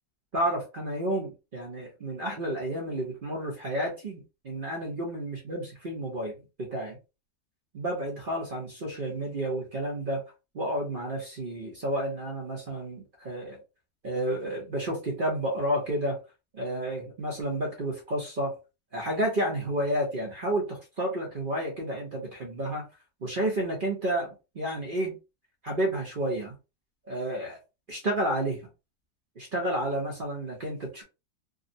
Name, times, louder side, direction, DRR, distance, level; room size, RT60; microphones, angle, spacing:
voice 1, 0.3-7.0 7.7-10.2 10.5-13.6 14.0-16.2 16.5-18.6 18.9-22.9 23.2-25.1 25.6-26.6 27.1-27.6 27.9-28.6 29.4-31.0, right 1 dB, 50° right, 0.6 m, -31 dB
3.7 x 2.0 x 2.6 m
omnidirectional pair, 2.0 m